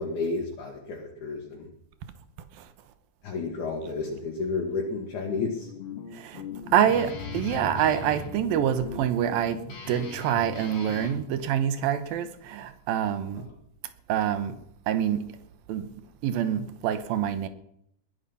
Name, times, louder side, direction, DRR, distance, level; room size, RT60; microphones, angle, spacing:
voice 1, 0.0-1.7 3.2-5.7, left 4 dB, 60° left, -1 dB, 3.1 m, -31 dB
Guitar, 5.4-11.2, left 6 dB, 40° left, 2.9 m, -40 dB
voice 2, 6.1-6.4 6.7-13.5 14.1-14.6 14.9-15.3 15.7-15.9 16.2-17.5, right 10 dB, 85° right, 10 dB, 2.9 m, -26 dB
sound 1, 7.0-10.6, left 5 dB, 80° left, 3.4 m, -42 dB
20.5 x 11.0 x 5.7 m, 0.73 s
omnidirectional pair, 4.1 m